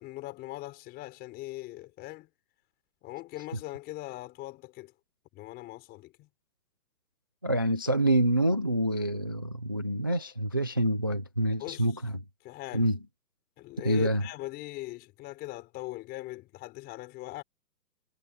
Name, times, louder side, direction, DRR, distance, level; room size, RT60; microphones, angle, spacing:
voice 1, 0.0-2.3 3.0-4.9 5.3-6.3 11.5-12.0 12.4-12.9 13.6-17.4, left 18 dB, 20° left, 5.2 m, -41 dB
voice 2, 7.4-12.1 12.7-13.0 13.8-14.2, right 1 dB, 15° right, 0.5 m, -26 dB
hypercardioid pair, 160°, 50 cm